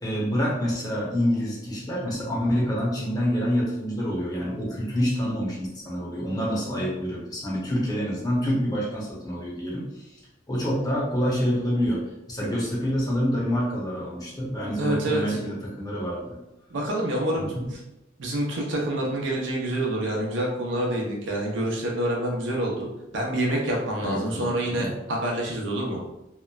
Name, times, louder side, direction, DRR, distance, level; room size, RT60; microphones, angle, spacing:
voice 1, 0.0-9.8 10.5-16.4 24.0-25.0, equal, 20° left, -5 dB, 0.7 m, -27 dB
voice 2, 14.8-15.4 16.7-17.8 18.2-22.9 23.1-26.0, right 1 dB, 80° right, -2 dB, 0.6 m, -27 dB
2.9 x 2.1 x 2.3 m, 0.93 s
head